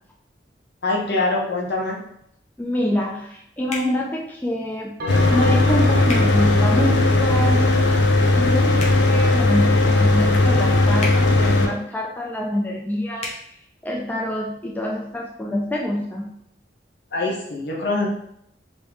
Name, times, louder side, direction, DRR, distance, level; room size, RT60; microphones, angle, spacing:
voice 1, 0.8-2.0 17.1-18.1, left 2 dB, 65° left, -2 dB, 0.9 m, -24 dB
voice 2, 2.6-5.0 5.3-7.7 8.4-13.6 13.8-16.3, equal, 10° left, -2 dB, 0.3 m, -26 dB
sound 1, 3.7-3.9 6.0-6.2 8.7-9.0 11.0-11.2 13.2-13.4, left 2 dB, 40° left, 0.8 m, -30 dB
Bell, 5.0-9.6, equal, 55° right, 0.6 m, -33 dB
Mechanical fan, 5.1-11.7, left 2 dB, 80° left, 0.5 m, -17 dB
3.1 x 2.6 x 3.5 m, 0.73 s
head